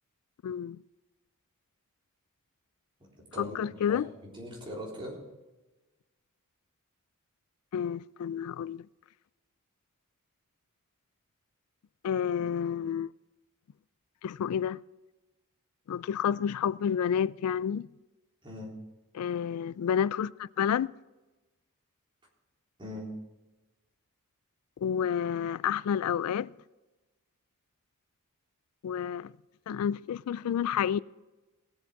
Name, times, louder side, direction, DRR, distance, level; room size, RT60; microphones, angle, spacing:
voice 1, 0.4-0.8 3.4-4.1 7.7-8.9 12.0-13.1 14.2-14.8 15.9-17.9 19.1-20.9 24.8-26.5 28.8-29.3 29.7-31.0, left 8 dB, 85° left, 0.3 m, -30 dB
voice 2, 3.3-5.2 18.4-18.7 22.8-23.1, equal, 25° right, 3.7 m, -41 dB
18.5 x 7.8 x 4.7 m
head